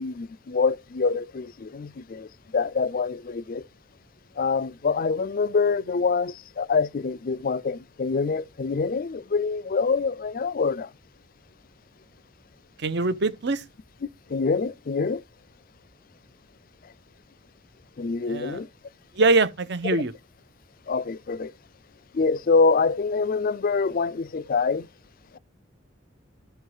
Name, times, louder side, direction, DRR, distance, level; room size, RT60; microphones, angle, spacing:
voice 1, 0.0-3.6 4.4-10.9 14.3-15.2 18.0-18.7 20.9-21.5 22.1-24.9, left 4 dB, 45° left, 0.4 m, -25 dB
voice 2, 12.8-13.6 18.3-18.6 19.1-20.1, right 3 dB, 60° right, 0.8 m, -23 dB
13.0 x 4.6 x 4.7 m
head